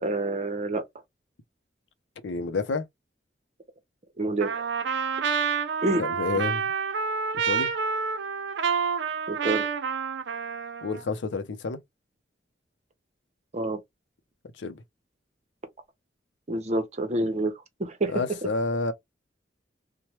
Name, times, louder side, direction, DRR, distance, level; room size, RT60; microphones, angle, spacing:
voice 1, 0.0-0.8 4.2-4.6 5.8-6.0 6.3-6.5 9.3-9.7 13.5-13.8 16.5-17.5 17.8-18.1, right 2 dB, 40° right, 0.7 m, -27 dB
voice 2, 2.2-2.9 6.0-6.7 7.5-7.7 10.8-11.8 14.6-14.8 18.1-18.9, left 3 dB, 90° left, 0.5 m, -29 dB
Trumpet, 4.4-11.0, right 6 dB, 75° right, 0.5 m, -28 dB
3.0 x 2.1 x 2.9 m
head